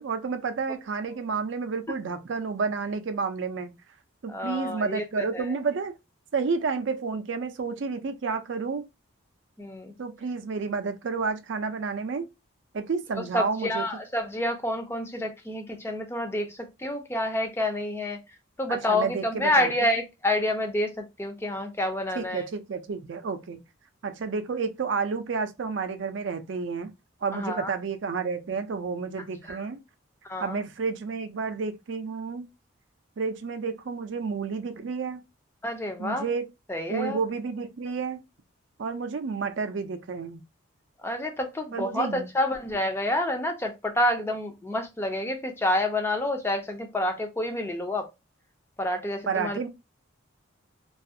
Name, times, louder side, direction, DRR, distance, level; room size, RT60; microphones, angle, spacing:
voice 1, 0.0-3.7 4.2-5.9 6.3-8.9 10.0-12.3 12.7-13.8 18.7-19.9 22.1-23.6 24.0-26.9 27.2-29.8 30.4-32.4 33.2-35.2 36.0-36.5 36.9-38.2 38.8-40.4 41.7-42.3 49.3-49.7, right 5 dB, 60° right, 0.4 m, -30 dB
voice 2, 4.3-5.4 9.6-9.9 13.3-18.2 18.6-22.4 27.3-27.7 29.5-29.6 30.2-30.6 35.6-36.3 36.7-37.2 41.0-48.1 48.8-49.7, left 1 dB, 10° left, 0.4 m, -28 dB
2.4 x 2.3 x 2.6 m
head